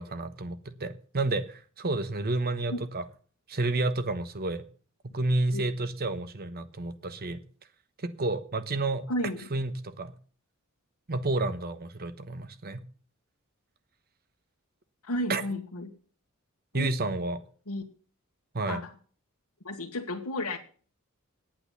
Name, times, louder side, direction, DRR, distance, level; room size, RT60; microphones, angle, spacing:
voice 1, 0.0-3.0 3.5-4.6 5.0-7.4 8.0-9.1 9.5-10.1 11.1-12.8 15.3-15.4 16.7-17.4 18.5-18.8, right 2 dB, 45° right, 12 dB, 1.1 m, -30 dB
voice 2, 9.1-9.5 15.0-15.9 16.7-16.9 17.7-17.8 18.7-18.9 19.6-20.6, left 1 dB, 85° left, 0 dB, 1.4 m, -32 dB
10.0 x 8.9 x 7.0 m, 0.42 s
head